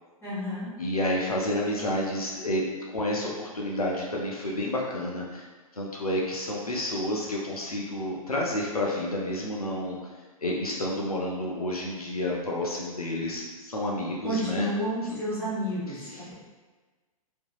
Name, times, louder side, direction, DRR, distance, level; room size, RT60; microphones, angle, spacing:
voice 1, 0.2-0.7 14.2-16.3, equal, 10° left, -10 dB, 1.2 m, -30 dB
voice 2, 0.8-5.5 5.7-10.0 10.4-14.7 16.1-16.2, left 1 dB, 85° left, -3 dB, 0.5 m, -30 dB
2.8 x 2.6 x 2.2 m, 1.3 s
figure-of-eight pair, 105°, 18 cm